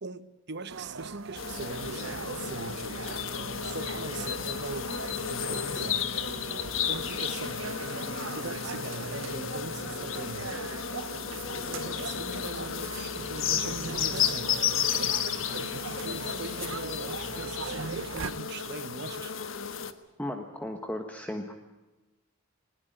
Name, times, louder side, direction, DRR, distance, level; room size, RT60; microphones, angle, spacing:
voice 1, 0.0-2.9 3.6-6.1 6.8-10.6 11.6-14.6 15.7-19.3, right 3 dB, 60° right, 1.1 m, -41 dB
sound 1, 0.7-18.3, right 4 dB, 80° right, 1.0 m, -40 dB
sound 2, 1.3-19.9, left 8 dB, 85° left, 1.4 m, -33 dB
voice 2, 20.2-21.5, left 1 dB, 10° left, 1.4 m, -35 dB
20.5 x 20.5 x 9.1 m
head